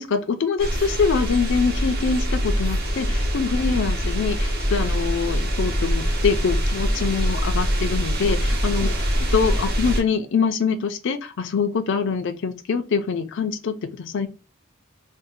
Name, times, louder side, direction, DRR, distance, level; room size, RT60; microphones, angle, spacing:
voice 1, 0.0-8.9 9.3-14.3, left 5 dB, 65° left, 0.4 m, -24 dB
sound 1, 0.6-10.0, equal, 50° right, 0.9 m, -23 dB
2.6 x 2.1 x 4.0 m
head